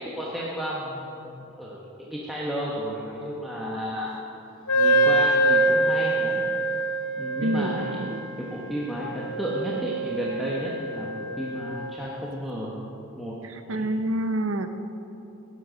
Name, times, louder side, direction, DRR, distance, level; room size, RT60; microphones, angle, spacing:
voice 1, 0.0-4.1 4.7-6.5 7.2-8.0 8.4-12.8 13.2-13.4 13.6-13.9, equal, ahead, -6 dB, 1.1 m, -33 dB
Wind instrument woodwind instrument, 4.7-12.0, right 1 dB, 90° left, 0.9 m, -25 dB
voice 2, 7.4-8.3 13.7-14.7, right 1 dB, 70° right, 8 dB, 0.8 m, -27 dB
17.5 x 7.7 x 5.1 m, 3.0 s
head